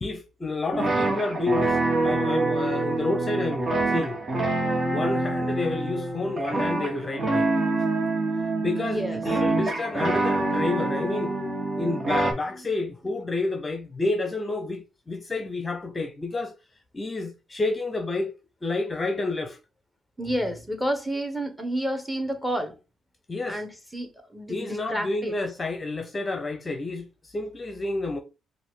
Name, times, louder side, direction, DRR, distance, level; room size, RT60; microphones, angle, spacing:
voice 1, 0.0-1.8 2.0-4.2 4.9-7.4 8.6-11.3 11.8-16.6 16.9-18.3 18.6-19.6 23.3-23.6 24.5-28.2, left 3 dB, 30° left, 0.8 m, -29 dB
sound 1, 0.7-12.3, right 2 dB, 35° right, 1.6 m, -26 dB
voice 2, 8.8-9.2 12.5-12.7 20.2-22.8 23.5-25.3, equal, 5° right, 1.3 m, -30 dB
5.5 x 2.6 x 3.8 m
cardioid pair, 90°, 0 cm